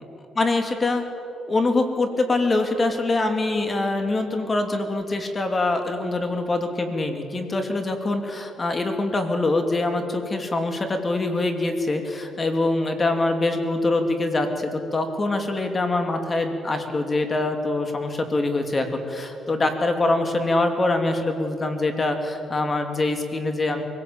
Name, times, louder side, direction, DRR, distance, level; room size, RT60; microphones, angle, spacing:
voice 1, 0.3-1.0 1.5-23.8, left 2 dB, 30° left, 6 dB, 2.8 m, -24 dB
23.5 x 17.0 x 8.8 m, 2.8 s
cardioid pair, 90°, 0 cm